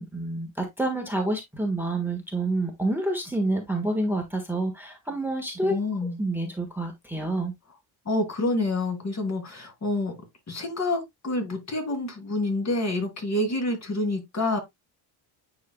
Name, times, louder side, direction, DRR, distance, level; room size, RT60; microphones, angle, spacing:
voice 1, 0.0-5.7 6.2-7.5, right 2 dB, 5° right, 1.5 m, -28 dB
voice 2, 5.6-6.2 8.1-10.1 10.5-14.6, left 2 dB, 35° left, 2.7 m, -27 dB
9.4 x 4.7 x 2.3 m
cardioid pair, 105°, 46 cm